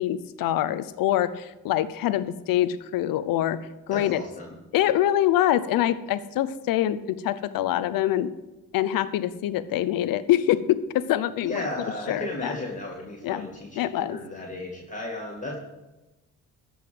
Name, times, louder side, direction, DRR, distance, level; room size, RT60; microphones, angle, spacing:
voice 1, 0.0-3.6 3.9-4.2 4.7-8.3 8.7-11.6 12.1-12.5 13.2-13.5 13.8-14.2, left 12 dB, 75° left, 15 dB, 0.8 m, -25 dB
voice 2, 3.9-4.6 11.4-15.6, left 2 dB, 20° left, -2 dB, 2.5 m, -35 dB
14.0 x 5.5 x 7.8 m, 1.0 s
supercardioid pair, 65°, 34 cm